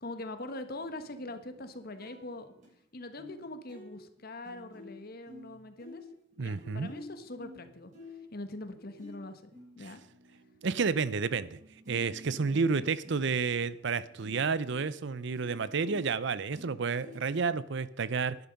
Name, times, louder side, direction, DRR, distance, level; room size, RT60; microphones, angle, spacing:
voice 1, 0.0-2.5 2.9-6.0 6.4-9.5 9.8-10.0 12.5-12.9, left 2 dB, 50° left, 1.3 m, -43 dB
sound 1, 0.7-2.8 3.2-3.4 3.7-11.3 11.6-17.7, left 2 dB, 35° right, 6.4 m, -51 dB
voice 2, 6.4-6.9 9.8-9.9 10.6-11.6 11.9-18.4, right 5 dB, 60° right, 0.6 m, -30 dB
11.5 x 11.0 x 5.3 m
head